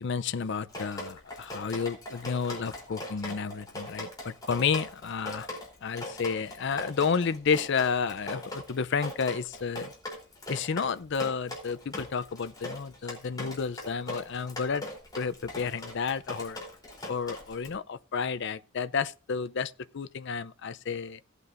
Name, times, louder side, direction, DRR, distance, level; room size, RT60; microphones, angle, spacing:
voice 1, 0.0-5.5 5.8-9.9 10.5-14.9 15.2-16.6 17.1-21.2, left 5 dB, 60° left, 0.5 m, -31 dB
Drip, 0.7-17.7, left 1 dB, 20° left, 3.3 m, -40 dB
17.5 x 8.2 x 2.5 m
head